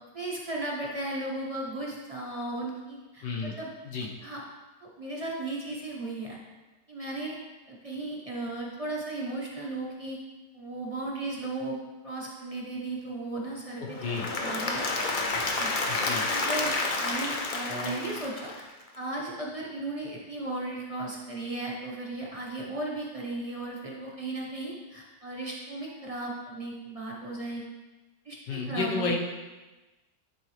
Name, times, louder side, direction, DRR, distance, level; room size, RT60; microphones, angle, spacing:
voice 1, 0.1-3.7 4.2-4.4 4.8-6.4 6.9-7.4 7.7-10.2 10.5-11.8 12.0-14.9 15.6-15.7 16.3-16.7 17.0-18.6 18.9-27.6 28.2-29.2, right 2 dB, 25° right, -3 dB, 0.8 m, -35 dB
voice 2, 3.2-3.5 3.8-4.1 14.0-14.3 15.9-16.2 28.5-29.2, left 4 dB, 90° left, 0 dB, 1.7 m, -31 dB
Applause / Crowd, 13.9-18.9, left 3 dB, 60° left, 0.5 m, -30 dB
10.5 x 4.0 x 3.2 m, 1.2 s
omnidirectional pair, 1.8 m